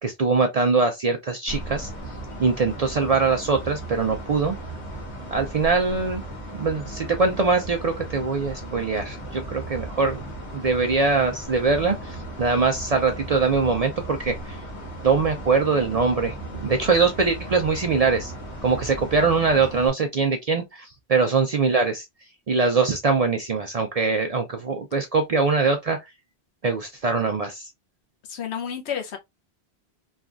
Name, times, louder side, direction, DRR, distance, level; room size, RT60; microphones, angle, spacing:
voice 1, 0.0-1.9 2.4-4.6 5.3-6.2 6.5-10.2 10.5-14.6 15.0-18.3 18.6-22.0 22.5-26.1 26.6-27.7, right 4 dB, 55° right, 0.4 m, -22 dB
sound 1, 1.5-19.9, right 1 dB, 35° left, 1.1 m, -36 dB
voice 2, 28.3-29.2, left 8 dB, 85° left, 1.0 m, -30 dB
3.3 x 2.3 x 2.4 m
omnidirectional pair, 1.1 m